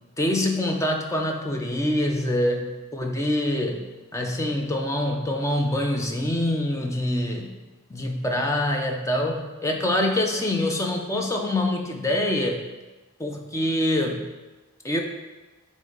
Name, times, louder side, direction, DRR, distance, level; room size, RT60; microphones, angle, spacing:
voice 1, 0.2-7.6 7.9-12.7 13.2-14.3 14.8-15.0, left 1 dB, 15° left, 2 dB, 0.5 m, -25 dB
8.9 x 3.1 x 3.8 m, 1.2 s
head